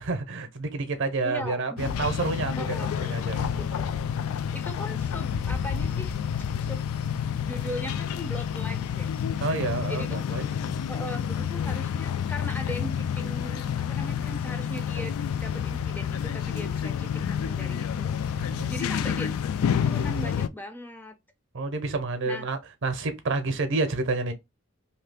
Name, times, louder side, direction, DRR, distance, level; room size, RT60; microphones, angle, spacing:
voice 1, 0.0-2.8 3.0-3.7 9.4-10.8 18.4-18.7 21.5-24.3, right 3 dB, 60° right, 0.6 m, -29 dB
voice 2, 1.2-2.1 2.6-3.0 3.6-4.2 4.5-6.1 6.6-6.9 7.4-9.2 9.9-10.2 10.9-19.3 19.8-21.1 22.3-22.5, equal, 10° left, 0.4 m, -39 dB
sound 1, 1.8-20.5, left 8 dB, 80° left, 0.3 m, -29 dB
2.8 x 2.3 x 3.3 m
head